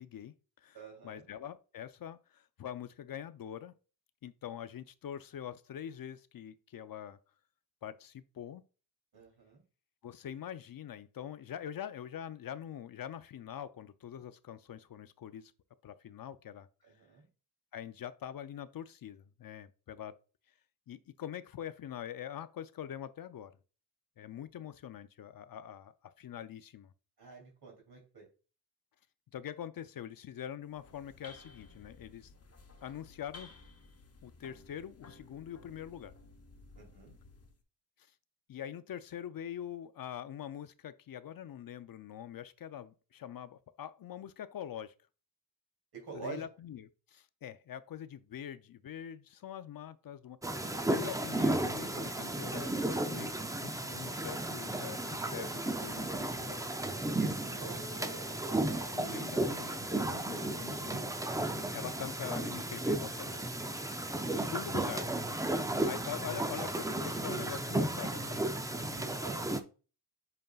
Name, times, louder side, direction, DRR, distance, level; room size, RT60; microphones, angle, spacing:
voice 1, 0.0-0.8 1.0-3.7 4.2-7.2 7.8-8.6 10.0-15.5 15.8-16.7 17.7-20.2 20.9-23.5 24.2-26.9 29.3-32.3 32.8-33.5 34.2-36.1 38.5-44.9 46.1-53.3 53.6-56.6 58.9-61.1 61.7-63.4 64.3-65.1 65.8-68.5, left 10 dB, 55° left, 0.5 m, -44 dB
voice 2, 0.7-1.3 9.1-9.6 16.8-17.3 27.2-28.3 36.8-37.1 45.9-46.5 57.2-59.0 69.0-69.5, right 4 dB, 60° right, 3.0 m, -47 dB
sound 1, 30.6-37.6, left 3 dB, 35° left, 0.9 m, -56 dB
sound 2, 50.4-69.6, right 1 dB, 10° right, 0.4 m, -34 dB
7.7 x 5.3 x 2.3 m
wide cardioid pair, 150°, 41 cm